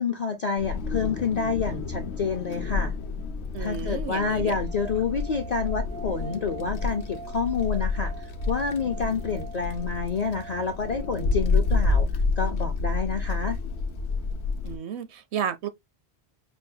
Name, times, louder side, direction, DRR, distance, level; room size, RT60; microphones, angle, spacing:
voice 1, 0.0-2.9 3.6-12.1 12.4-13.6, left 5 dB, 50° left, 0.6 m, -28 dB
Wind, 0.6-14.8, left 3 dB, 75° left, 0.9 m, -29 dB
voice 2, 3.5-4.5 14.6-15.7, right 8 dB, 75° right, 0.9 m, -32 dB
sound 1, 4.6-11.7, right 5 dB, 45° right, 0.3 m, -45 dB
5.4 x 2.2 x 2.6 m
omnidirectional pair, 1.1 m